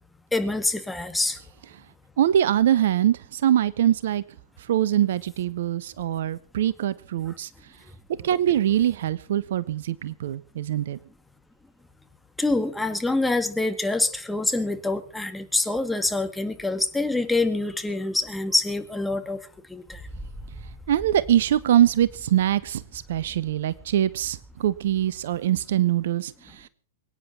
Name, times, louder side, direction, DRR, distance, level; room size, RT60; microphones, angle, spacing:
voice 1, 0.3-1.4 12.4-19.4 19.7-20.1, left 2 dB, 5° left, 8 dB, 2.1 m, -26 dB
voice 2, 2.2-4.2 4.7-7.5 8.2-11.0 20.9-26.7, right 11 dB, 60° right, 19 dB, 0.8 m, -23 dB
Wind, 19.9-25.4, right 1 dB, 15° right, 3.7 m, -45 dB
23.5 x 9.9 x 6.0 m, 0.41 s
figure-of-eight pair, 100°, 0 cm